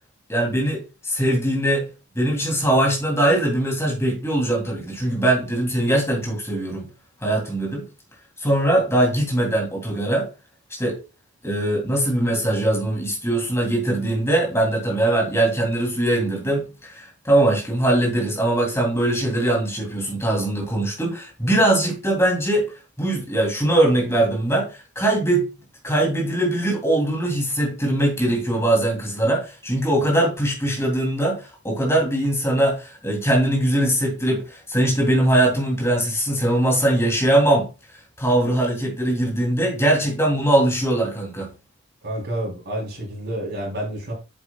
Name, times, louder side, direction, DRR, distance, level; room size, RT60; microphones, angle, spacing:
voice 1, 0.3-1.8 2.1-6.9 7.2-7.8 8.4-10.3 10.8-11.0 11.4-22.7 23.0-24.7 24.9-25.4 25.8-37.7 38.2-41.5, right 1 dB, 15° left, 3.0 m, -21 dB
voice 2, 42.0-44.1, right 1 dB, 50° right, 3.6 m, -29 dB
8.0 x 7.4 x 2.3 m
head